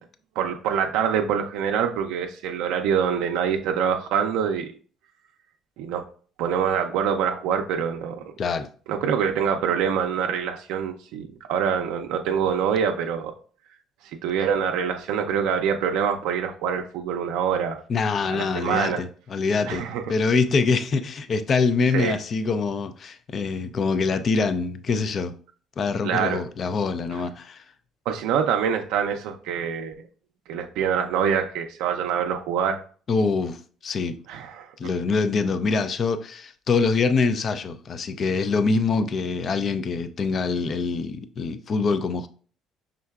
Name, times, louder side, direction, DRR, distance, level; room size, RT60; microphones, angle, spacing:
voice 1, 0.4-4.7 5.8-6.1 6.4-8.2 8.9-13.3 14.2-17.8 18.3-19.0 19.7-20.0 21.9-22.2 26.0-26.4 27.1-27.2 28.1-29.9 30.5-32.8 34.3-34.7, right 7 dB, 85° right, 0.4 m, -25 dB
voice 2, 17.9-25.3 25.8-27.6 33.1-34.2 34.8-42.3, left 4 dB, 40° left, 0.4 m, -24 dB
5.4 x 3.7 x 2.3 m
cardioid pair, 105°, 0 cm